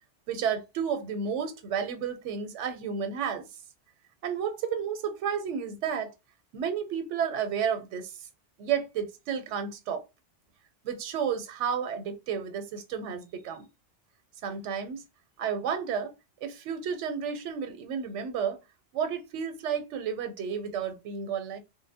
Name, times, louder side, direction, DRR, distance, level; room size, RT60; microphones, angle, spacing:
voice 1, 0.3-3.5 4.2-6.1 6.5-8.1 8.6-10.0 10.8-13.7 14.4-15.0 15.4-16.1 16.4-18.6 18.9-21.6, right 7 dB, 80° right, 0.9 m, -31 dB
2.7 x 2.1 x 2.6 m
omnidirectional pair, 1.2 m